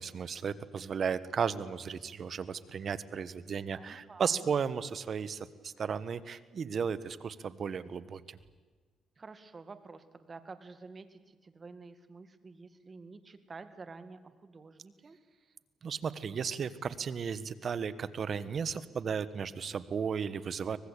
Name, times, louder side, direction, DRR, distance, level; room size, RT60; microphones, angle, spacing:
voice 1, 0.0-8.4 15.8-20.8, right 6 dB, 50° right, 15 dB, 1.3 m, -35 dB
voice 2, 3.8-4.5 9.2-15.2, right 4 dB, 35° right, 10 dB, 2.0 m, -50 dB
24.0 x 20.0 x 8.4 m, 1.4 s
cardioid pair, 90°, 0 cm